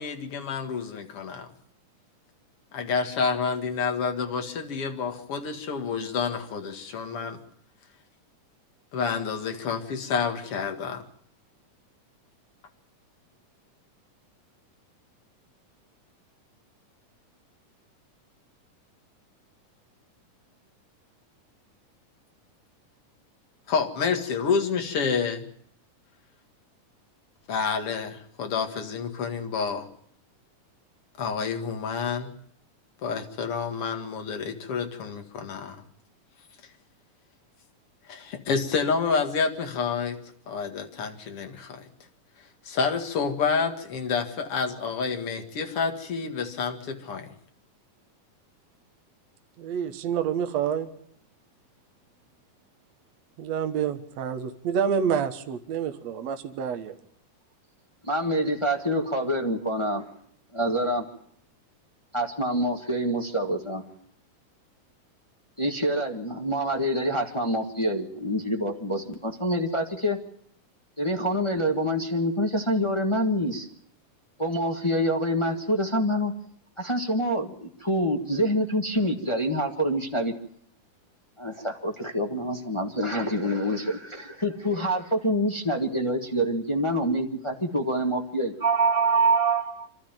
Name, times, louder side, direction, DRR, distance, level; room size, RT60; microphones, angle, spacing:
voice 1, 0.0-1.5 2.7-7.4 8.9-11.0 23.7-25.5 27.5-29.9 31.2-32.3 33.0-35.8 38.1-40.2 40.5-41.9 42.6-47.3, left 5 dB, 50° left, 5 dB, 2.6 m, -29 dB
voice 2, 49.6-50.9 53.4-57.0, right 7 dB, 60° right, 7 dB, 2.3 m, -28 dB
voice 3, 58.0-60.0 60.5-61.0 62.1-63.8 65.6-70.2 71.0-73.7 74.4-76.3 76.8-80.3 81.4-89.9, right 1 dB, 30° left, 3 dB, 0.5 m, -26 dB
26.5 x 13.0 x 9.1 m, 0.67 s
omnidirectional pair, 3.8 m